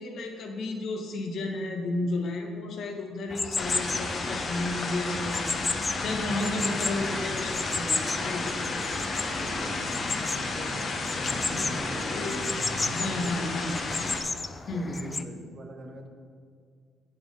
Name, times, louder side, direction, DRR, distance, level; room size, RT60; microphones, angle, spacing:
voice 1, 0.0-5.5 6.0-8.5 12.0-12.4 12.9-13.7 14.7-15.1, left 2 dB, 65° left, 2 dB, 1.3 m, -32 dB
sound 1, 3.3-15.2, left 3 dB, 25° left, 0.5 m, -34 dB
sound 2, 3.6-14.2, left 3 dB, 45° left, 1.1 m, -32 dB
voice 2, 9.1-9.9 10.6-10.8 11.3-13.6 14.6-16.1, right 2 dB, 45° right, 4 dB, 1.2 m, -43 dB
7.4 x 7.0 x 5.3 m, 2.1 s
cardioid pair, 80°, 0 cm